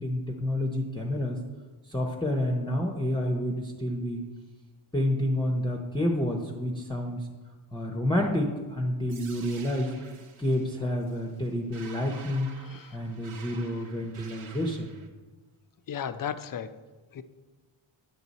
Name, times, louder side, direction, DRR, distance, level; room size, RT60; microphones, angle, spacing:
voice 1, 0.0-1.4 1.9-4.2 4.9-7.3 7.7-9.9 10.4-12.5 12.9-14.9, left 1 dB, 10° left, 0 dB, 0.7 m, -29 dB
sound 1, 9.1-15.1, right 5 dB, 75° right, 1.1 m, -49 dB
voice 2, 12.6-13.0 15.9-16.8 17.1-17.2, left 8 dB, 45° left, 12 dB, 0.5 m, -35 dB
9.8 x 7.0 x 4.1 m, 1.3 s
wide cardioid pair, 120°, 50 cm